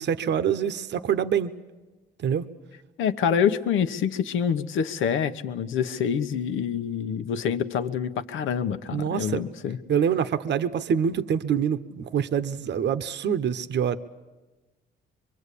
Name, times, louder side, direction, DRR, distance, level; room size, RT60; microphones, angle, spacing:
voice 1, 0.0-1.5 2.2-2.5 8.9-9.4 9.9-14.0, right 8 dB, 60° right, 10 dB, 1.0 m, -25 dB
voice 2, 3.0-9.8, left 7 dB, 80° left, 9 dB, 1.1 m, -26 dB
24.5 x 23.5 x 8.4 m, 1.2 s
cardioid pair, 90°, 20 cm